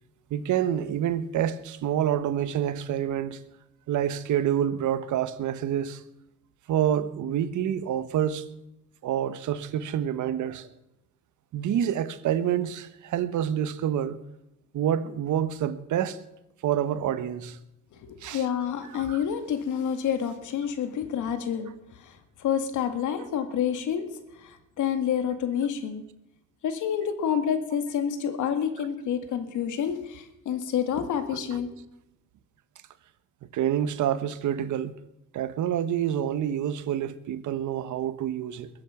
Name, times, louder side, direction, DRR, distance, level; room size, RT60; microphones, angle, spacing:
voice 1, 0.3-3.4 3.9-6.0 6.7-8.5 9.0-10.7 11.5-14.2 14.7-16.2 16.6-17.6 18.2-18.4 18.9-19.2 33.5-34.9 35.3-38.7, right 10 dB, 75° right, 1.2 m, -27 dB
voice 2, 17.9-24.1 24.4-26.0 26.6-31.7, left 8 dB, 80° left, 2.1 m, -28 dB
21.5 x 8.3 x 7.2 m
cardioid pair, 90°, 30 cm